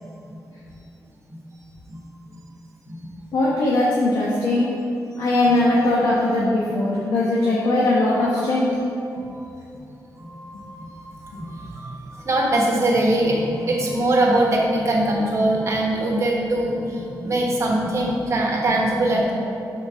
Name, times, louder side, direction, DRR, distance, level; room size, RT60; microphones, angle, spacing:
voice 1, 3.3-4.7 5.2-8.7, left 2 dB, 75° left, -6 dB, 1.1 m, -20 dB
voice 2, 10.2-19.3, right 1 dB, 45° right, -2 dB, 1.2 m, -22 dB
5.6 x 4.5 x 6.1 m, 2.7 s
wide cardioid pair, 160°, 7 cm